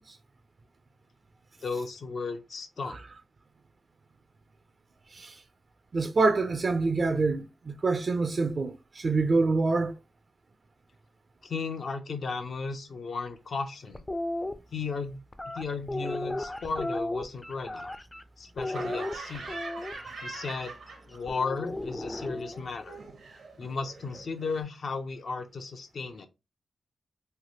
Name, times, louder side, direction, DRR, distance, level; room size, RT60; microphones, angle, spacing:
voice 1, 1.6-3.0 11.4-14.0 14.7-17.9 18.4-19.5 20.2-20.7 21.1-23.0 23.6-26.3, left 4 dB, 65° left, 0.5 m, -35 dB
voice 2, 5.9-9.9, right 3 dB, 50° right, 0.4 m, -26 dB
sound 1, 13.9-14.5 15.3-18.2 18.6-20.1 21.3-22.6, left 1 dB, 20° left, 0.4 m, -34 dB
Laughter, 18.7-21.4 21.7-24.6, right 3 dB, 80° right, 0.8 m, -43 dB
3.2 x 2.1 x 2.8 m
cardioid pair, 60°, 0 cm